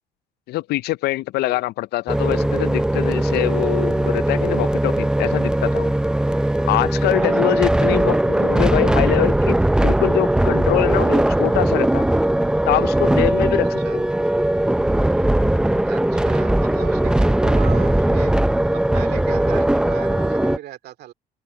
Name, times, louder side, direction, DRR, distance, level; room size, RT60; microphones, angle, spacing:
voice 1, 0.5-5.9 6.7-9.6 9.8-12.1 12.7-14.0, left 18 dB, 70° left, 0.5 m, -24 dB
sound 1, 2.1-20.6, right 1 dB, 5° right, 0.6 m, -19 dB
voice 2, 7.1-7.5 13.8-14.0 15.9-18.3 18.7-21.1, right 13 dB, 70° right, 2.3 m, -37 dB
open air
cardioid pair, 110°, 17 cm